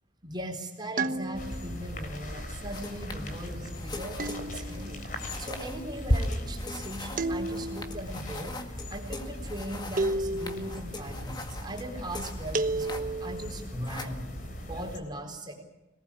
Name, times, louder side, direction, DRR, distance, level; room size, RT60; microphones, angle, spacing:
voice 1, 0.2-5.1 5.4-14.2 14.6-15.6, right 1 dB, 20° right, 3 dB, 4.1 m, -39 dB
sound 1, 1.0-1.8 4.2-5.0 7.2-8.0 10.0-10.8 12.5-13.4, right 2 dB, 45° right, 1.1 m, -31 dB
sound 2, 1.3-15.0, equal, 45° left, 3.9 m, -37 dB
sound 3, 2.7-13.4 13.6-15.1, left 2 dB, 20° left, 1.8 m, -44 dB
26.0 x 19.0 x 8.4 m, 0.98 s
head